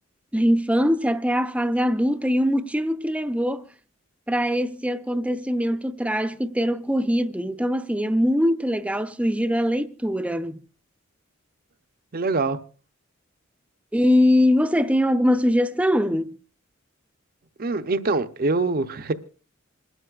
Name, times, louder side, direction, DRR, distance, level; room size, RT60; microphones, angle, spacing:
voice 1, 0.3-3.7 4.3-10.6 13.9-16.4, equal, 5° right, 0.5 m, -22 dB
voice 2, 12.1-12.6 17.6-19.1, right 3 dB, 45° right, 0.7 m, -24 dB
27.0 x 12.5 x 2.4 m
head